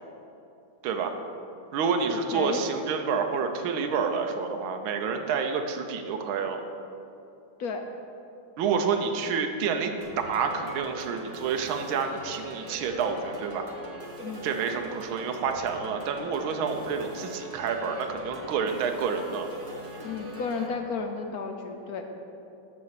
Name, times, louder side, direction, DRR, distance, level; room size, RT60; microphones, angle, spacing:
voice 1, 0.8-1.1 1.7-6.6 8.6-13.7 14.4-19.5, right 5 dB, 80° right, 5 dB, 1.5 m, -28 dB
voice 2, 2.1-2.6 7.6-7.8 14.2-14.4 20.0-22.0, left 5 dB, 70° left, 4 dB, 0.9 m, -33 dB
sound 1, 10.0-20.7, right 1 dB, 30° right, 1.1 m, -42 dB
12.5 x 4.2 x 6.6 m, 2.7 s
omnidirectional pair, 2.2 m